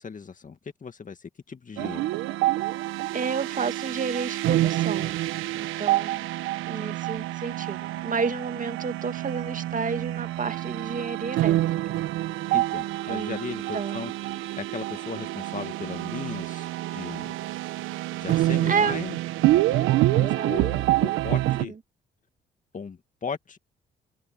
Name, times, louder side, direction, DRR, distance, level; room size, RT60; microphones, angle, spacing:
voice 1, 0.0-2.1 12.5-14.1 14.6-17.4 18.2-19.2 19.7-21.7 22.7-23.6, left 5 dB, 40° left, 2.0 m, -37 dB
sound 1, 1.8-21.6, right 16 dB, 85° right, 1.2 m, -27 dB
voice 2, 3.1-5.2 5.5-11.6 11.9-12.1 13.1-13.4 13.7-14.0 18.6-19.0 20.2-20.7 21.4-21.7, right 5 dB, 40° right, 2.3 m, -31 dB
open air
supercardioid pair, 60°, 20 cm